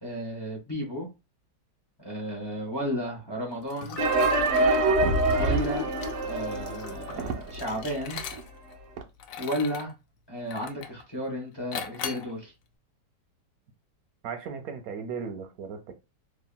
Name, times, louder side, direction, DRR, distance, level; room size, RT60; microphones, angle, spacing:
voice 1, 0.0-1.1 2.0-4.0 5.3-5.9 6.2-8.2 9.4-9.9 10.3-12.5, equal, 25° left, 0.5 m, -33 dB
Liquid, 3.7-8.7 9.2-9.9 10.5-11.0 11.7-12.3, left 7 dB, 70° left, 0.8 m, -38 dB
sound 1, 4.0-7.7 8.0-8.1 8.3-8.4 9.0-9.1, right 2 dB, 85° right, 0.6 m, -25 dB
voice 2, 14.2-15.9, right 6 dB, 70° right, 1.0 m, -36 dB
2.9 x 2.7 x 2.2 m
omnidirectional pair, 1.9 m